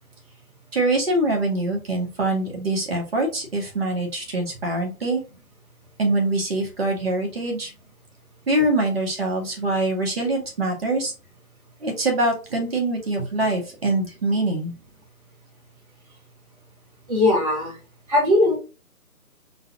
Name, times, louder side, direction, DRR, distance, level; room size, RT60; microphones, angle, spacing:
voice 1, 0.7-5.2 6.0-7.7 8.5-11.1 11.8-14.7, right 2 dB, 40° right, 1 dB, 1.5 m, -24 dB
voice 2, 17.1-17.8 18.1-18.6, left 2 dB, 25° right, -6 dB, 1.1 m, -19 dB
3.9 x 3.2 x 2.8 m, 0.31 s
figure-of-eight pair, 165°, 45 cm